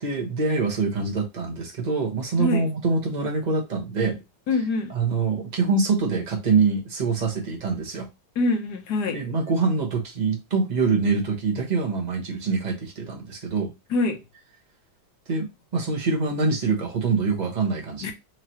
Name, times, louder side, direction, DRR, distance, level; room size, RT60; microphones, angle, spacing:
voice 1, 0.0-4.2 4.9-8.1 9.1-13.7 15.3-15.5 15.7-18.1, right 4 dB, 30° right, 0.9 m, -24 dB
voice 2, 4.5-4.9 8.4-9.2 13.9-14.2 18.0-18.1, left 3 dB, 60° left, 1.2 m, -24 dB
4.7 x 2.9 x 2.8 m
omnidirectional pair, 2.4 m